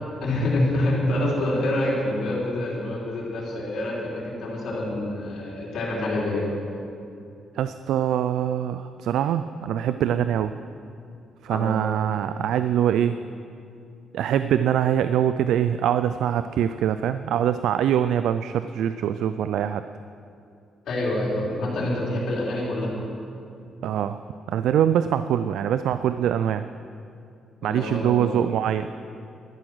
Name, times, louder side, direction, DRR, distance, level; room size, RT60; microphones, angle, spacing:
voice 1, 0.2-6.5 11.5-11.7 20.9-22.9 27.6-28.3, left 1 dB, 65° left, -4 dB, 3.6 m, -26 dB
voice 2, 7.6-10.5 11.4-13.2 14.1-19.8 23.8-24.2 24.5-26.6 27.6-28.9, right 10 dB, 80° right, 11 dB, 0.3 m, -23 dB
12.5 x 9.7 x 6.2 m, 2.5 s
cardioid pair, 90°, 0 cm